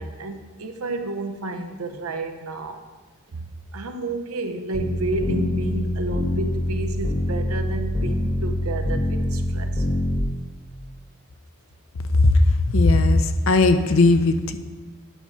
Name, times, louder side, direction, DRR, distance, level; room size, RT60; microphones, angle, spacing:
voice 1, 0.0-2.8 3.3-9.9, right 2 dB, 85° right, 6 dB, 0.8 m, -31 dB
sound 1, 4.7-10.2, left 1 dB, 35° left, 1.2 m, -25 dB
voice 2, 12.7-14.6, left 2 dB, 65° left, 9 dB, 0.6 m, -17 dB
10.0 x 4.6 x 5.6 m, 1.3 s
head